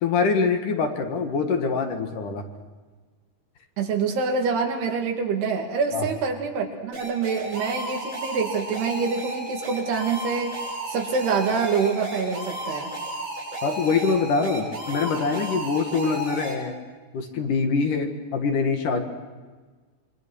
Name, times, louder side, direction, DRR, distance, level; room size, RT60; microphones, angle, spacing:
voice 1, 0.0-2.5 5.9-6.1 13.6-16.7 17.1-19.0, left 4 dB, 60° left, 4 dB, 3.0 m, -24 dB
voice 2, 3.8-10.6 10.9-12.9, right 5 dB, 80° right, 2 dB, 4.4 m, -26 dB
sound 1, 6.9-16.5, right 1 dB, 30° right, 7.8 m, -33 dB
27.0 x 24.5 x 6.3 m, 1.4 s
omnidirectional pair, 4.6 m